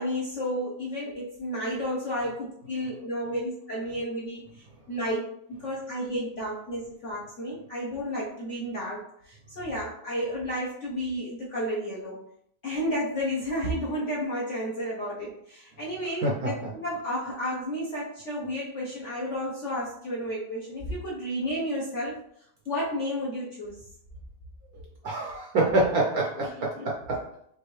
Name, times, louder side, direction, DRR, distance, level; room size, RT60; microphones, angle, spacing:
voice 1, 0.0-12.2 12.6-22.2 22.7-23.8 26.4-26.9, equal, 50° left, -6 dB, 0.9 m, -32 dB
voice 2, 25.0-27.2, right 2 dB, 60° right, -2 dB, 1.0 m, -26 dB
6.1 x 2.6 x 3.2 m, 0.69 s
omnidirectional pair, 2.3 m